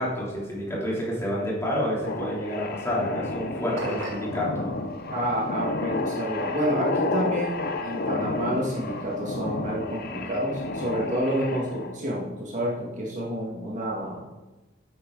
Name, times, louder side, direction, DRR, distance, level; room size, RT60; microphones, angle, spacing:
voice 1, 0.0-4.7, equal, 15° left, -6 dB, 3.4 m, -29 dB
sound 1, 2.1-12.0, left 2 dB, 50° left, 0.7 m, -31 dB
sound 2, 3.8-4.4, right 2 dB, 65° right, 2.0 m, -33 dB
voice 2, 5.1-14.2, equal, 35° right, -4 dB, 2.1 m, -29 dB
12.0 x 8.7 x 4.1 m, 1.1 s
head